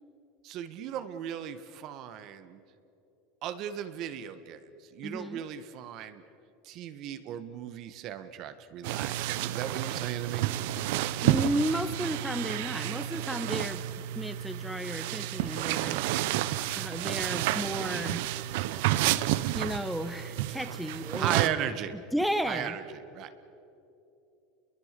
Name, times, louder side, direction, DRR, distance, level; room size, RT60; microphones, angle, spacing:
voice 1, 0.4-2.6 3.4-6.2 6.6-10.4 20.7-20.8 21.1-21.9 22.5-23.3, right 10 dB, 50° right, 10 dB, 1.6 m, -37 dB
voice 2, 5.0-5.4 11.2-13.8 14.1-16.0 16.7-18.2 19.2-21.7 22.1-22.7, equal, ahead, 8 dB, 1.1 m, -33 dB
sound 1, 8.8-21.5, right 14 dB, 75° right, 0.8 m, -30 dB
29.0 x 22.5 x 6.9 m, 2.8 s
supercardioid pair, 130°, 0 cm